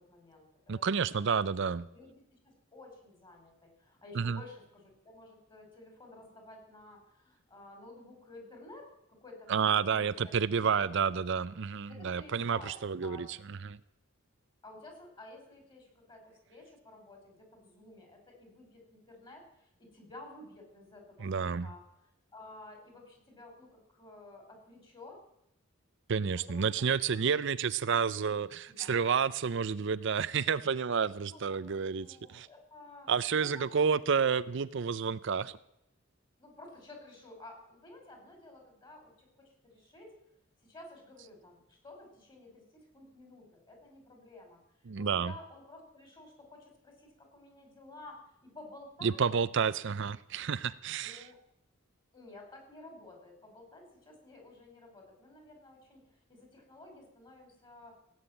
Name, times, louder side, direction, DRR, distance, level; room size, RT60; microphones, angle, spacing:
voice 1, 0.0-1.5 1.9-11.0 11.9-13.3 14.6-21.8 22.3-25.2 26.4-27.0 28.7-28.9 31.3-33.1 33.4-33.8 36.4-40.2 40.6-49.2 51.0-51.4 52.1-58.0, left 2 dB, 25° left, 3 dB, 5.2 m, -53 dB
voice 2, 0.7-1.9 4.2-4.4 9.5-13.8 21.2-21.7 26.1-32.5 33.1-35.6 44.9-45.3 49.0-51.3, right 6 dB, 65° right, 15 dB, 0.5 m, -30 dB
17.5 x 8.9 x 8.9 m, 0.81 s
head